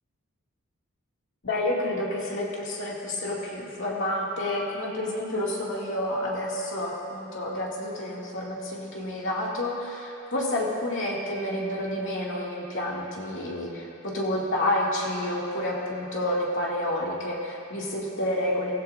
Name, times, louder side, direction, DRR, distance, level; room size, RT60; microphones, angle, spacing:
voice 1, 1.4-18.7, left 1 dB, 60° left, -4 dB, 2.2 m, -29 dB
16.5 x 15.5 x 2.5 m, 2.7 s
head